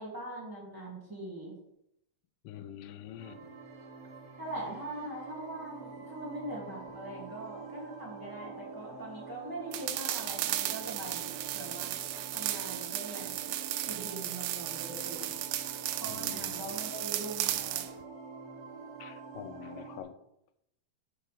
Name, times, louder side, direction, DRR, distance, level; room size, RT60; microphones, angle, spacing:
voice 1, 0.0-1.5 4.4-11.9 12.3-13.5 13.9-15.4 16.0-17.9, right 1 dB, 5° right, -5 dB, 2.2 m, -42 dB
voice 2, 2.4-3.4 16.1-16.6 19.0-20.2, left 10 dB, 80° left, 8 dB, 2.2 m, -45 dB
sound 1, 3.2-20.0, right 4 dB, 50° right, 3.5 m, -47 dB
sound 2, 9.7-17.9, right 13 dB, 80° right, 1.8 m, -35 dB
11.5 x 5.6 x 3.6 m, 0.79 s
omnidirectional pair, 4.0 m